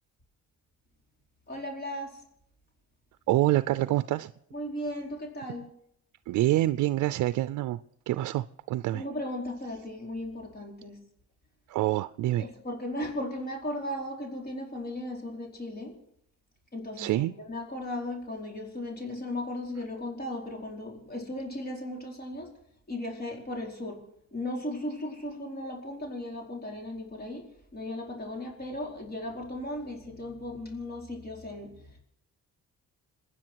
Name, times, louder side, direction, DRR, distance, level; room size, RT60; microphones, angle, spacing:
voice 1, 1.5-2.2 4.5-5.7 8.9-11.0 12.4-16.0 16.7-22.5 22.9-24.0 24.3-32.0, left 1 dB, 30° left, 0 dB, 4.8 m, -36 dB
voice 2, 3.3-4.3 6.3-7.8 8.1-9.0 11.7-12.5 17.0-17.3, right 15 dB, 80° right, 14 dB, 0.5 m, -26 dB
27.5 x 10.0 x 4.6 m, 0.73 s
cardioid pair, 90°, 30 cm